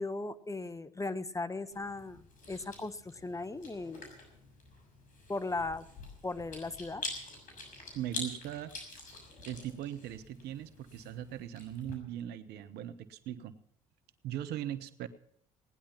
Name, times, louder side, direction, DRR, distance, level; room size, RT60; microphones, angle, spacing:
voice 1, 0.0-4.0 5.3-5.8 6.2-7.0, left 3 dB, 20° left, 13 dB, 1.1 m, -37 dB
Chewing mastication, 1.7-11.9, left 3 dB, 50° left, 6.5 m, -46 dB
voice 2, 7.9-8.7 9.4-13.5 14.2-15.1, right 11 dB, 70° right, 12 dB, 1.1 m, -39 dB
18.0 x 10.5 x 5.8 m, 0.71 s
hypercardioid pair, 60°, 17 cm